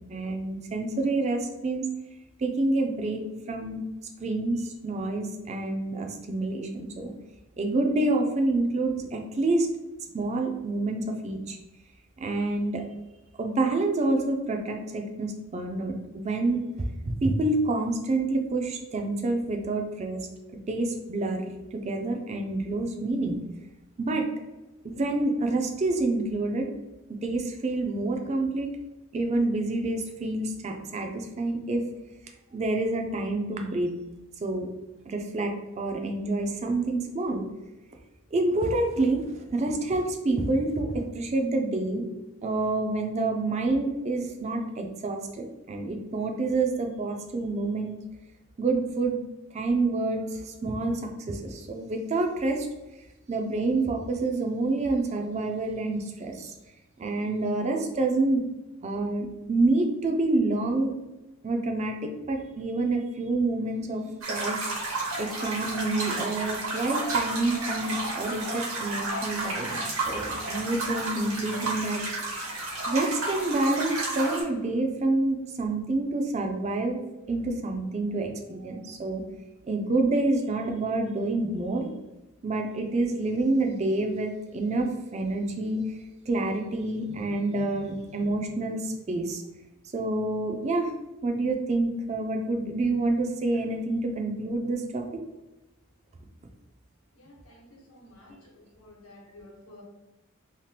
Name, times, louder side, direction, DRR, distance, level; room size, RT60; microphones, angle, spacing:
voice 1, 0.1-1.9 2.4-3.2 3.5-3.8 4.2-7.1 7.6-9.7 10.1-11.6 12.2-12.8 13.4-16.6 17.1-20.2 20.7-23.4 24.0-24.3 24.8-26.7 27.2-28.7 29.1-31.8 32.5-33.9 34.4-34.7 35.1-35.5 35.8-37.5 38.3-42.0 42.4-48.0 48.6-49.2 49.5-52.7 53.3-56.5 57.0-58.4 58.8-60.9 61.4-64.7 65.2-72.0 72.9-77.0 77.3-79.2 79.7-81.9 82.4-85.8 86.3-89.4 89.9-90.9 91.2-95.0, right 2 dB, 30° right, 3 dB, 0.3 m, -28 dB
sound 1, 64.2-74.4, right 2 dB, 70° right, 0.8 m, -32 dB
voice 2, 97.1-99.8, left 1 dB, 80° left, -2 dB, 0.9 m, -52 dB
2.8 x 2.1 x 3.2 m, 1.0 s
head